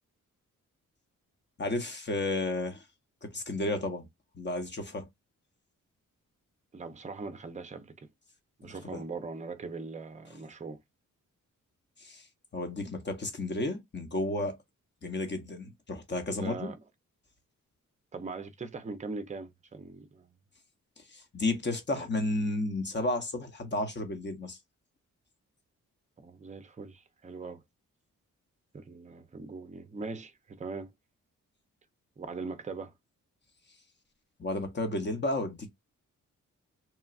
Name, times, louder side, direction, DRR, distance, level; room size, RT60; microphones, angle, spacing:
voice 1, 1.6-2.8 3.2-4.1 4.3-5.1 8.6-9.0 12.0-12.3 12.5-14.6 15.0-16.7 21.0-24.6 34.4-35.7, left 2 dB, 35° left, 0.8 m, -32 dB
voice 2, 6.7-8.1 8.6-10.8 16.4-16.8 18.1-20.3 21.9-22.1 26.2-27.6 28.7-30.9 32.2-32.9, right 4 dB, 20° right, 0.5 m, -41 dB
3.0 x 2.3 x 2.4 m
cardioid pair, 65°, 32 cm